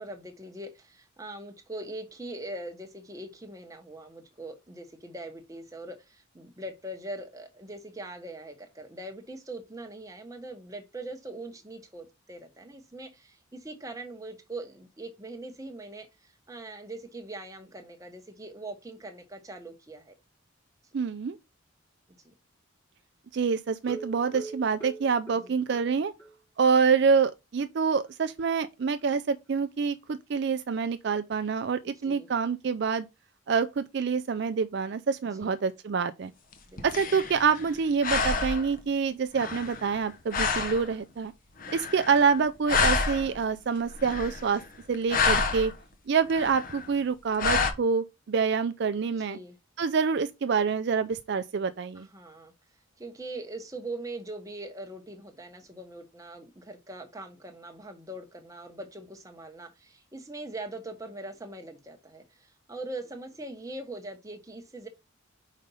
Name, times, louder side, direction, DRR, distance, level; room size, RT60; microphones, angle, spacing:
voice 1, 0.0-20.1 22.2-22.3 25.3-25.6 32.0-32.3 35.4-35.5 36.7-36.9 49.2-49.6 51.9-52.5 53.0-64.9, right 2 dB, 15° right, 1.0 m, -42 dB
voice 2, 20.9-21.4 23.3-26.1 26.6-33.1 33.5-36.3 36.8-41.3 41.7-44.6 44.9-45.7 46.1-49.4 49.8-52.1, right 5 dB, 55° right, 0.4 m, -26 dB
sound 1, 23.8-26.3 26.7-26.8 27.1-27.2 27.6-27.7, right 2 dB, 15° left, 1.4 m, -43 dB
sound 2, 36.5-37.8 38.0-38.8 39.4-40.0 40.3-40.9 41.6-42.4 42.7-43.4 43.9-44.6 44.9-45.7 46.3-46.9 47.4-47.7, left 4 dB, 40° left, 0.9 m, -28 dB
5.1 x 4.1 x 5.4 m
head